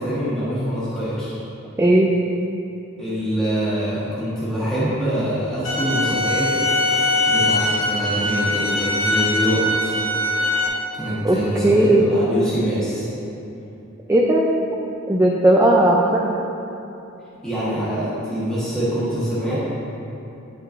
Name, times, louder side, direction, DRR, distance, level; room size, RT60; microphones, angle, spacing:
voice 1, 0.0-1.4 3.0-6.6 7.3-10.0 10.9-13.1 17.4-19.6, right 1 dB, 5° left, -11 dB, 1.2 m, -24 dB
voice 2, 1.8-2.1 11.2-11.4 11.6-12.0 14.1-14.5 15.1-16.2 19.5-19.6, right 1 dB, 10° right, -3 dB, 0.3 m, -16 dB
sound 1, 5.6-10.7, left 2 dB, 80° left, 1.0 m, -21 dB
9.4 x 5.4 x 2.5 m, 2.9 s
head